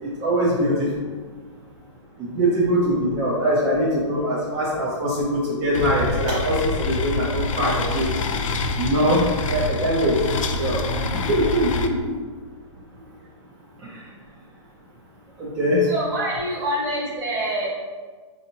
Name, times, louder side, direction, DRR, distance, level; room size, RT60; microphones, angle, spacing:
voice 1, 0.0-1.1 2.2-8.1 8.8-10.8 11.3-12.1 13.8-14.1 15.4-15.9, equal, 15° right, -7 dB, 0.3 m, -22 dB
sound 1, 5.7-11.9, left 3 dB, 85° left, 0.5 m, -26 dB
voice 2, 15.8-17.7, right 1 dB, 35° right, -5 dB, 1.2 m, -26 dB
4.2 x 2.7 x 2.7 m, 1.5 s
hypercardioid pair, 165°, 16 cm